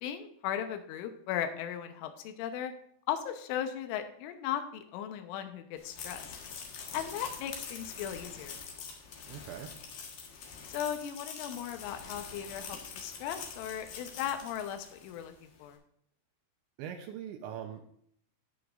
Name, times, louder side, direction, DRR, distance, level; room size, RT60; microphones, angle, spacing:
voice 1, 0.0-2.7 3.1-6.3 6.9-8.6 10.7-15.8, left 10 dB, 80° left, 7 dB, 3.3 m, -37 dB
sound 1, 5.8-15.3, left 6 dB, 65° left, 2.5 m, -45 dB
voice 2, 9.3-9.7 16.8-17.8, right 9 dB, 80° right, 4 dB, 2.8 m, -41 dB
17.5 x 6.4 x 2.6 m, 0.67 s
omnidirectional pair, 5.8 m